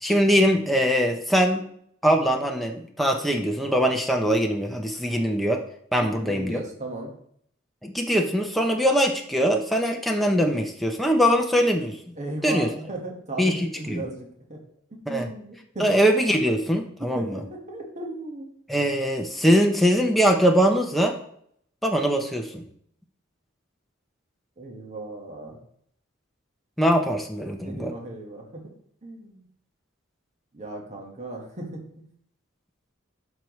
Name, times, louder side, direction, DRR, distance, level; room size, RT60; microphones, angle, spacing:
voice 1, 0.0-1.6 2.0-5.6 5.9-6.6 7.8-12.0 12.4-12.7 13.4-13.6 13.9-14.0 15.1-15.3 15.8-17.2 18.7-21.2 21.8-22.6 26.8-27.9, equal, ahead, 1 dB, 0.7 m, -22 dB
voice 2, 6.0-7.1 12.1-14.6 14.9-15.9 17.1-18.5 24.6-25.6 27.6-28.6 29.0-29.4 30.5-32.1, right 1 dB, 35° right, 1 dB, 1.5 m, -36 dB
12.0 x 4.6 x 3.1 m, 0.66 s
head